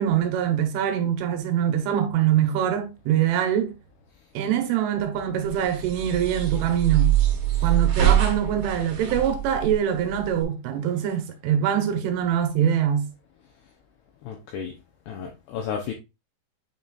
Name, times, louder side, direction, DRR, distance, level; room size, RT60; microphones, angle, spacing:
voice 1, 0.0-3.7 4.3-7.1 7.6-13.1, right 9 dB, 80° right, 3.3 m, -24 dB
sound 1, 5.4-10.4, right 11 dB, 55° right, 2.7 m, -24 dB
voice 2, 7.5-7.8 14.2-14.7 15.1-15.9, left 7 dB, 80° left, 2.3 m, -33 dB
9.4 x 4.2 x 2.4 m
omnidirectional pair, 5.7 m